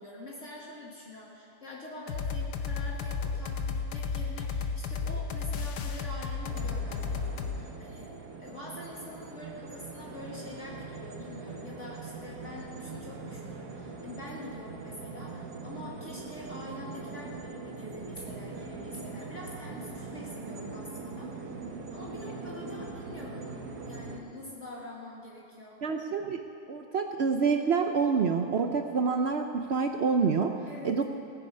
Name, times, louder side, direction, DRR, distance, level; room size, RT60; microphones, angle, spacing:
voice 1, 0.0-21.6 21.9-23.5 23.8-25.8 30.7-31.0, left 1 dB, 50° left, -4 dB, 1.9 m, -45 dB
sound 1, 2.1-7.6, left 5 dB, 80° left, 1.4 m, -33 dB
sound 2, 6.5-24.2, right 4 dB, 85° right, 1.7 m, -42 dB
voice 2, 25.8-30.5 30.8-31.0, right 5 dB, 60° right, 5 dB, 0.7 m, -27 dB
17.0 x 9.7 x 5.4 m, 2.7 s
omnidirectional pair, 1.7 m